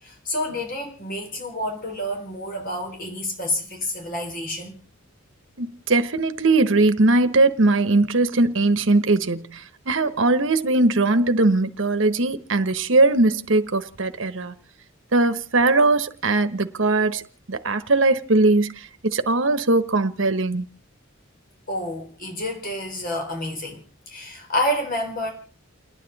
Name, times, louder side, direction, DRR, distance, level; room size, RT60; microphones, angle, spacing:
voice 1, 0.0-4.8 21.7-25.3, left 1 dB, 45° left, 4.3 m, -29 dB
voice 2, 5.6-14.5 15.1-17.2 17.5-20.6, right 2 dB, 65° right, 1.1 m, -20 dB
30.0 x 10.0 x 4.1 m
head